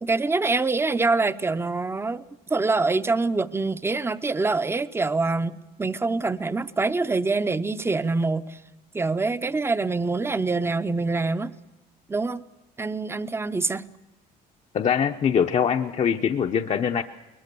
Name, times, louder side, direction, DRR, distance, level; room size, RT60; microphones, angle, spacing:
voice 1, 0.0-5.5 5.8-8.6 8.9-11.5 12.1-12.4 12.8-13.8, right 3 dB, 15° right, 12 dB, 0.7 m, -25 dB
voice 2, 14.7-17.0, left 7 dB, 40° left, 4 dB, 0.8 m, -23 dB
21.5 x 21.0 x 6.9 m, 1.1 s
cardioid pair, 110°, 17 cm